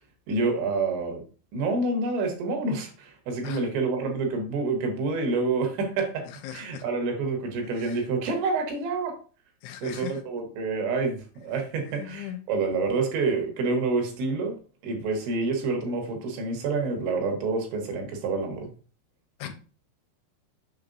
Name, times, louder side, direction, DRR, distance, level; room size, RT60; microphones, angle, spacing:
voice 1, 0.3-1.2 1.5-6.3 6.5-9.1 9.8-14.6 14.8-18.7, right 3 dB, 75° right, 3 dB, 3.6 m, -28 dB
voice 2, 6.2-6.8 7.6-8.0 9.6-10.2 11.9-12.4 19.4-19.5, left 12 dB, 90° left, 7 dB, 3.2 m, -39 dB
7.3 x 7.0 x 2.6 m, 0.38 s
omnidirectional pair, 5.4 m